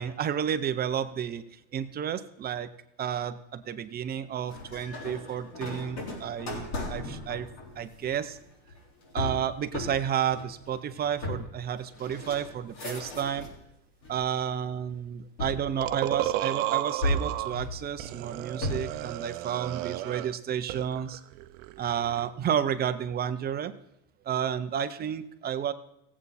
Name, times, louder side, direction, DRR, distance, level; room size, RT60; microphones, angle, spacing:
voice 1, 0.0-1.4 1.7-2.7 3.0-7.5 7.8-8.4 9.1-13.5 14.1-21.2 21.8-23.7 24.2-25.7, right 9 dB, 25° right, 10 dB, 0.7 m, -31 dB
sound 1, 4.5-13.6 14.0-14.7 15.4-16.5 17.0-19.1, left 1 dB, 65° left, 4.1 m, -36 dB
Adult male burbs, 15.8-17.6 18.0-20.4 20.7-22.3, right 15 dB, 65° right, 0.7 m, -33 dB
16.0 x 8.3 x 4.2 m, 0.83 s
supercardioid pair, 130°, 39 cm